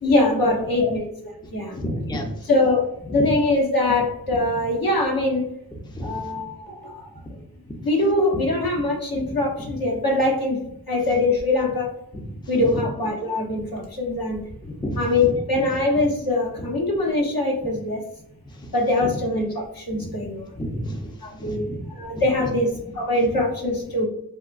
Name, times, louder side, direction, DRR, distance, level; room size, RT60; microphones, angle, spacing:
voice 1, 0.0-1.1 1.5-1.8 2.4-5.5 6.0-7.1 7.8-10.6 10.9-11.9 12.5-14.4 15.0-18.0 18.7-20.5 21.2-24.0, left 2 dB, 60° left, -1 dB, 1.0 m, -23 dB
voice 2, 1.7-2.3 3.1-3.2 5.9-6.2 12.1-12.2 12.5-12.6 14.6-15.0 20.6-21.0 21.4-21.9, equal, 10° left, 2 dB, 0.5 m, -30 dB
3.7 x 2.4 x 2.4 m, 0.76 s
wide cardioid pair, 50°, 40 cm